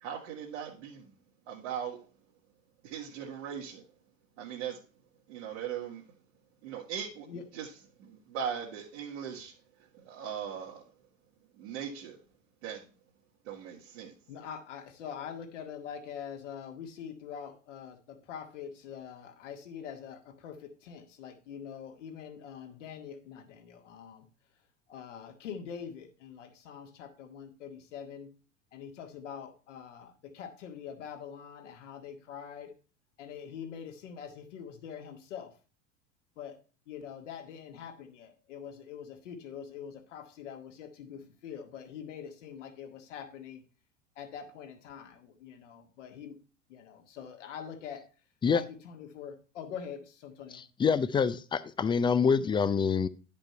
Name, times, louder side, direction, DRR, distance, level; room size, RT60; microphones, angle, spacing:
voice 1, 0.0-1.1 1.5-2.0 2.8-3.8 4.4-4.8 5.3-6.0 6.6-7.3 7.5-7.7 8.0-9.5 10.0-10.8 11.6-12.2 12.6-12.9 13.5-14.1, right 8 dB, 65° right, 2.0 m, -39 dB
voice 2, 14.3-24.3 24.9-28.3 28.7-32.8 33.2-35.5 36.4-36.6 36.9-43.6 44.2-46.4 46.7-48.1 48.5-50.6, left 7 dB, 65° left, 1.9 m, -44 dB
voice 3, 50.5-53.1, left 6 dB, 15° left, 0.4 m, -26 dB
10.5 x 5.2 x 4.4 m
figure-of-eight pair, 80°, 38 cm